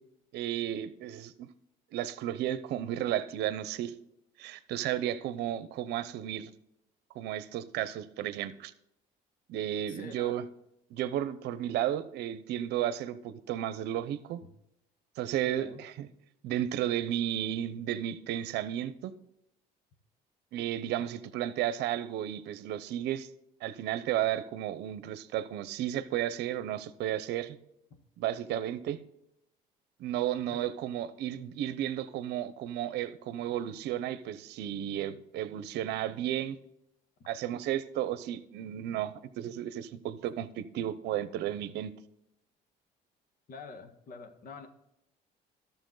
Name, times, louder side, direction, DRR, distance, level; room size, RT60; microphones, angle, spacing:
voice 1, 0.3-1.5 1.9-3.9 4.4-6.5 7.1-8.7 9.5-10.5 10.9-14.4 15.2-16.1 16.4-19.1 20.5-23.3 23.6-27.6 28.2-29.0 30.0-36.6 37.3-41.9, right 11 dB, 80° right, 14 dB, 0.7 m, -33 dB
voice 2, 9.9-10.4 15.5-15.8 30.5-30.7 43.5-44.7, left 4 dB, 55° left, 7 dB, 1.5 m, -46 dB
12.5 x 6.8 x 3.9 m, 0.82 s
cardioid pair, 110°, 17 cm